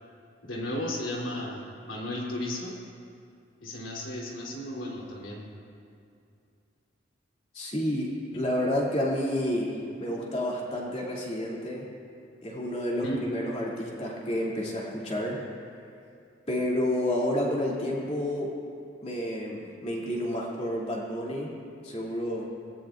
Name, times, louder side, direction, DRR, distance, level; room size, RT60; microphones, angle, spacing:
voice 1, 0.4-2.8 3.6-5.5 13.0-13.2, left 1 dB, 85° left, -3 dB, 3.4 m, -34 dB
voice 2, 7.5-9.7 10.0-11.9 12.4-15.4 16.5-18.5 19.0-21.5 21.8-22.5, left 1 dB, 30° left, -5 dB, 2.7 m, -30 dB
21.5 x 17.5 x 2.6 m, 2.5 s
head